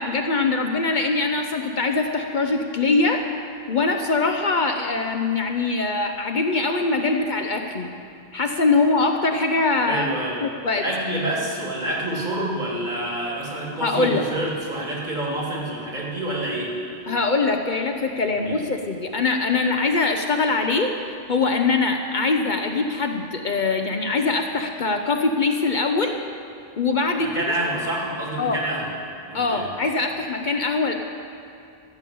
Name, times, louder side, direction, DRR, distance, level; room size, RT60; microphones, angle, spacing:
voice 1, 0.0-3.2 3.7-7.9 8.3-10.1 10.4-10.8 13.8-14.2 17.1-20.9 21.3-26.1 26.8-27.3 28.4-28.6 29.3-31.0, left 3 dB, 50° left, 4 dB, 0.8 m, -22 dB
voice 2, 9.5-10.4 10.8-16.7 18.2-18.6 27.2-28.9 29.3-29.7, right 1 dB, 45° right, -3 dB, 2.6 m, -28 dB
13.5 x 6.9 x 8.4 m, 2.6 s
omnidirectional pair, 1.1 m